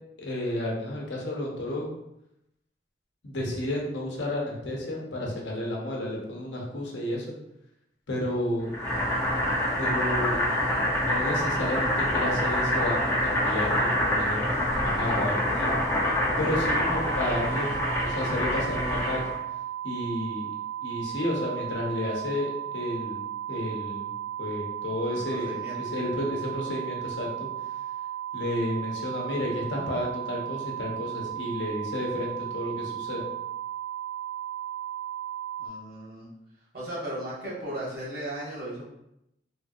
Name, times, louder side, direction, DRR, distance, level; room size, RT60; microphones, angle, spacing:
voice 1, 0.2-1.9 3.2-7.3 8.1-8.7 9.8-10.5 10.8-14.4 14.8-15.7 16.4-19.2 19.8-20.5 20.8-23.2 23.5-24.1 24.4-25.5 25.8-27.5 28.3-33.3, left 1 dB, 85° left, -2 dB, 0.8 m, -31 dB
Boiling, 8.7-19.4, left 1 dB, 15° left, 0.7 m, -26 dB
sound 1, 16.6-35.7, right 11 dB, 20° right, 0.5 m, -35 dB
voice 2, 25.1-25.8 35.6-36.3 36.7-38.8, right 1 dB, 55° right, -8 dB, 1.4 m, -36 dB
3.3 x 2.6 x 2.4 m, 0.83 s
head